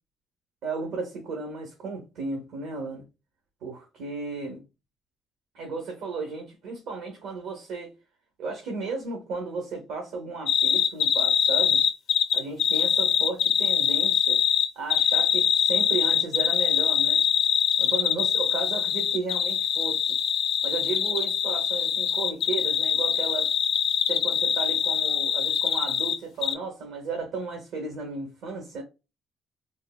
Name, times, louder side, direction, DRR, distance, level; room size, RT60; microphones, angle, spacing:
voice 1, 0.6-3.0 3.6-4.6 5.5-7.9 8.4-11.8 12.3-14.4 14.7-17.2 17.8-20.2 20.6-23.5 24.1-28.8, right 3 dB, 85° right, 0.9 m, -34 dB
sound 1, 10.5-26.2 26.4-26.5, left 9 dB, 65° left, 0.3 m, -23 dB
3.3 x 2.0 x 2.3 m
cardioid pair, 125°, 0 cm